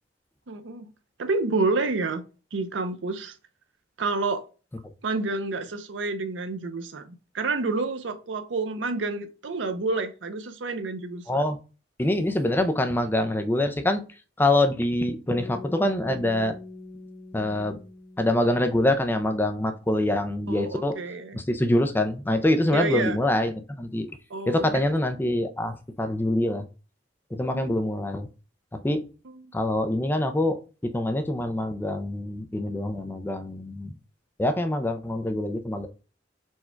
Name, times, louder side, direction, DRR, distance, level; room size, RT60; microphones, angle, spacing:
voice 1, 0.5-0.9 1.2-2.2 2.5-3.3 4.0-4.5 5.0-11.4 20.5-21.4 22.7-23.2 24.3-24.8 27.5-27.9 29.3-29.5, right 3 dB, 90° right, 0.6 m, -29 dB
voice 2, 11.3-11.6 12.0-14.0 14.4-16.6 17.3-17.8 18.2-21.0 21.3-24.1 24.5-26.6 27.3-28.3 28.7-29.0 29.5-33.9 34.4-35.9, left 1 dB, 10° left, 0.4 m, -25 dB
sound 1, 15.3-19.5, left 3 dB, 85° left, 1.1 m, -43 dB
4.4 x 2.3 x 4.4 m
head